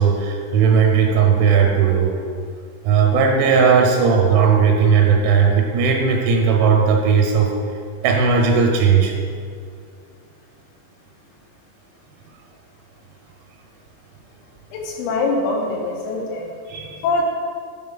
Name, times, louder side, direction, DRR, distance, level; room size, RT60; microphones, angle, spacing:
voice 1, 0.0-2.2 2.8-7.5 8.0-9.1 16.7-17.0, right 6 dB, 85° right, 1 dB, 3.0 m, -16 dB
voice 2, 14.7-16.4 17.0-17.2, left 3 dB, 85° left, -1 dB, 3.2 m, -23 dB
7.6 x 3.8 x 3.8 m, 2.2 s
omnidirectional pair, 5.2 m